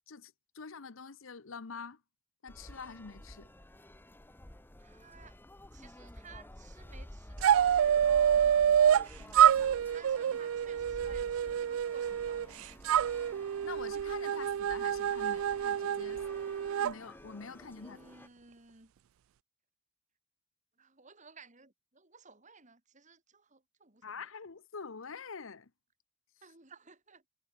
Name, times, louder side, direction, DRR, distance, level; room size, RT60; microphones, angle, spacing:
voice 1, 0.1-2.0 2.4-3.5 11.0-11.1 13.6-16.2 16.8-18.0 24.0-25.7, left 5 dB, 70° left, 0.9 m, -46 dB
sound 1, 2.5-18.3, left 1 dB, 10° left, 0.8 m, -51 dB
voice 2, 4.8-5.4 5.7-7.9 8.4-13.1 17.8-18.9 20.8-24.3 26.4-27.2, right 5 dB, 35° right, 3.8 m, -56 dB
sound 2, 7.4-9.1 9.3-12.5 12.8-16.9, right 9 dB, 80° right, 0.3 m, -27 dB
head